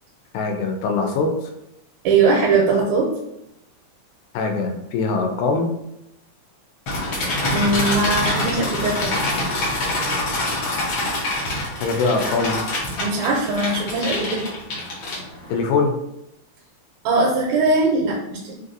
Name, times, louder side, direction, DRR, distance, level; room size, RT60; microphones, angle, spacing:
voice 1, 0.3-1.3 4.3-5.7 11.8-12.6 15.5-16.0, left 4 dB, 85° left, 4 dB, 2.0 m, -22 dB
voice 2, 2.0-3.1 7.5-9.3 13.0-14.5 17.0-18.6, right 3 dB, 80° right, -1 dB, 1.9 m, -20 dB
sound 1, 6.9-15.6, left 1 dB, 65° left, 1.3 m, -25 dB
4.7 x 2.6 x 2.6 m, 0.83 s
omnidirectional pair, 3.4 m